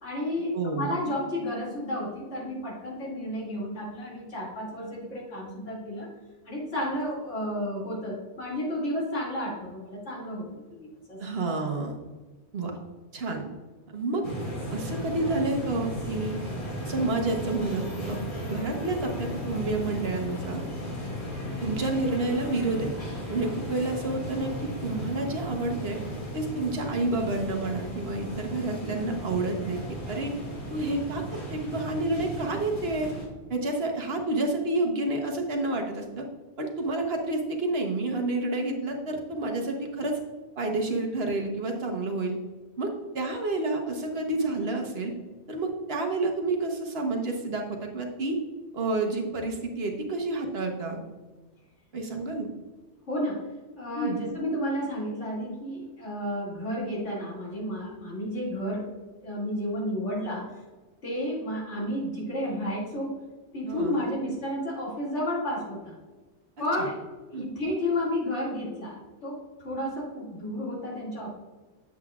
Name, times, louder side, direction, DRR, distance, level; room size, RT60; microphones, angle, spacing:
voice 1, 0.0-6.1 6.4-10.5 10.8-11.2 53.1-53.5 53.8-58.9 59.2-60.6 61.0-63.2 63.5-66.0 66.6-67.0 67.3-71.3, left 1 dB, 90° left, -5 dB, 2.7 m, -32 dB
voice 2, 0.5-0.9 11.2-11.9 12.5-12.8 13.1-13.4 13.9-14.2 14.7-16.4 16.9-18.2 18.5-20.6 21.6-22.9 23.3-26.0 26.3-29.8 30.1-30.3 30.7-33.1 33.5-36.3 36.6-40.2 40.6-42.3 42.8-45.1 45.5-48.4 48.7-51.0 51.9-52.5 54.0-54.2 63.7-64.1 67.3-67.5, right 2 dB, 60° right, 2 dB, 1.3 m, -29 dB
sound 1, 14.2-33.3, equal, 65° left, 2.3 m, -35 dB
8.2 x 7.9 x 2.4 m, 1.3 s
omnidirectional pair, 1.2 m